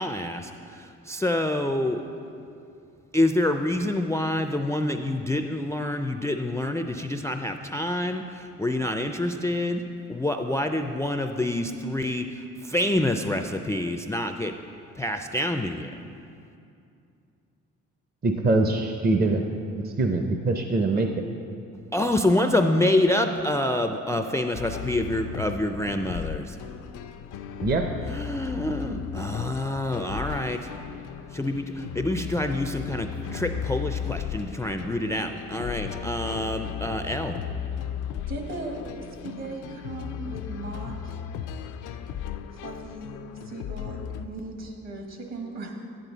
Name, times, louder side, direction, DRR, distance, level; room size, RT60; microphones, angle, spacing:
voice 1, 0.0-2.0 3.1-9.8 10.1-14.5 15.0-15.9 21.9-26.6 28.1-30.6 31.3-37.4, left 1 dB, 10° left, 6 dB, 0.4 m, -27 dB
voice 2, 18.2-19.4 19.8-21.1 27.6-27.8 32.9-33.0, right 2 dB, 30° right, 4 dB, 0.6 m, -23 dB
sound 1, 24.5-44.3, left 8 dB, 85° left, 0.5 m, -36 dB
voice 3, 38.3-41.1 42.6-45.7, right 2 dB, 60° right, 2 dB, 1.7 m, -38 dB
10.5 x 9.1 x 4.0 m, 2.6 s
cardioid pair, 90°, 30 cm